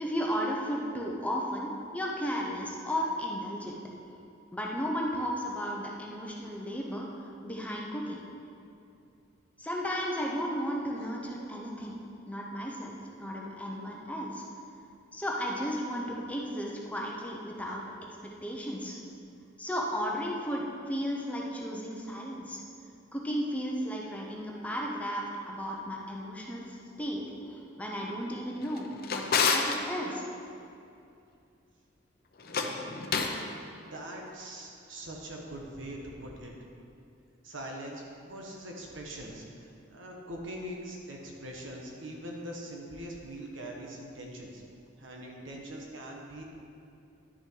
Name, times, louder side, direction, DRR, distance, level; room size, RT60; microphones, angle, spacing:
voice 1, 0.0-3.8 4.5-7.1 7.4-8.2 9.6-12.0 12.3-14.5 15.1-17.8 18.4-19.0 19.6-22.6 23.1-30.4, equal, 5° left, -2 dB, 0.9 m, -34 dB
Drawer open or close, 28.6-29.8 32.4-33.4, left 5 dB, 50° left, 0.7 m, -29 dB
voice 2, 33.7-36.5 37.4-44.6 45.0-46.4, right 1 dB, 70° right, -1 dB, 1.4 m, -42 dB
11.0 x 6.4 x 4.7 m, 2.6 s
head